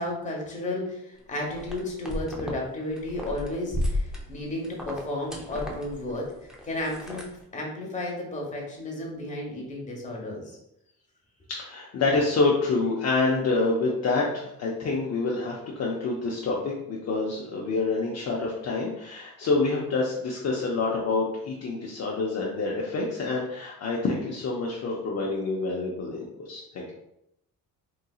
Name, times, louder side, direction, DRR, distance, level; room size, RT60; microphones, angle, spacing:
voice 1, 0.0-7.2 7.5-10.4, left 1 dB, 20° left, -2 dB, 1.0 m, -33 dB
sound 1, 1.5-2.6 2.9-7.4, left 1 dB, ahead, 0.5 m, -33 dB
voice 2, 11.6-26.9, left 3 dB, 45° left, -3 dB, 0.6 m, -27 dB
3.8 x 2.6 x 2.3 m, 0.82 s
cardioid pair, 110°, 35 cm